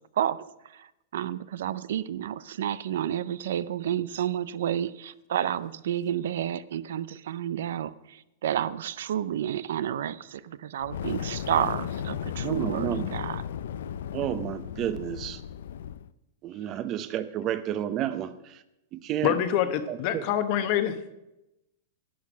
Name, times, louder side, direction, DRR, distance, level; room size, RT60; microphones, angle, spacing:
voice 1, 1.1-7.9 8.4-13.4, right 10 dB, 75° right, 0.5 m, -30 dB
Fire, 10.8-16.1, left 9 dB, 80° left, 0.5 m, -35 dB
voice 2, 12.4-13.1 14.1-15.4 16.4-18.6 18.9-19.4 19.9-20.2, right 11 dB, 30° right, 0.7 m, -31 dB
voice 3, 19.2-21.0, left 10 dB, 45° left, 1.0 m, -26 dB
11.5 x 8.6 x 6.1 m
supercardioid pair, 150°, 0 cm